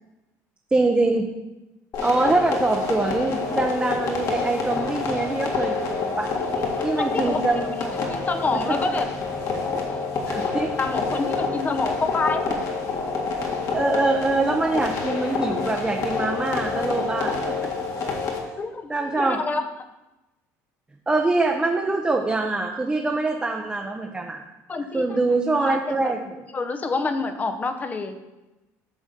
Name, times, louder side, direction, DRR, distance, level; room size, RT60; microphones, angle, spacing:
voice 1, 0.7-1.3 2.0-6.3 6.8-7.7 8.5-8.6 10.3-10.8 13.7-17.7 18.9-19.4 21.1-24.4 24.9-26.2, right 3 dB, 15° right, 1 dB, 0.7 m, -24 dB
sound 1, 1.9-18.4, left 4 dB, 50° left, 1.8 m, -27 dB
voice 2, 6.5-7.4 8.1-9.1 9.9-10.0 10.4-12.6 18.6-19.6 24.7-25.2 25.6-26.1 26.5-28.2, left 3 dB, 20° left, 8 dB, 0.7 m, -28 dB
7.1 x 4.0 x 6.6 m, 1.0 s
cardioid pair, 110°, 7 cm